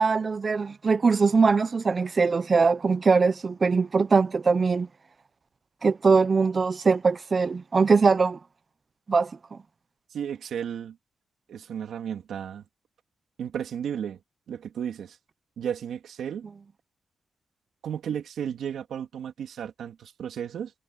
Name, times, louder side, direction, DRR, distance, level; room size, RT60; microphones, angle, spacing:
voice 1, 0.0-4.9 5.8-8.4 9.1-9.6, right 4 dB, 30° right, 0.6 m, -22 dB
voice 2, 10.1-11.0 11.5-12.6 13.4-14.2 14.5-15.2 15.6-16.5 17.8-20.7, right 8 dB, 75° right, 3.0 m, -33 dB
wide cardioid pair, 150°, 0 cm